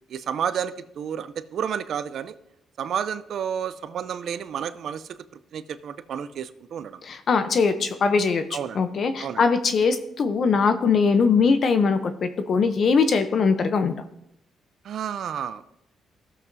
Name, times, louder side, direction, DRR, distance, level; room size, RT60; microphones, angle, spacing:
voice 1, 0.1-2.3 2.8-5.2 5.5-7.0 8.5-8.8 9.2-9.4 14.8-15.8, right 8 dB, 65° right, 13 dB, 0.5 m, -31 dB
voice 2, 7.0-8.4 8.7-13.9, left 5 dB, 55° left, 9 dB, 0.7 m, -21 dB
14.5 x 7.5 x 2.7 m, 0.79 s
cardioid pair, 90°, 0 cm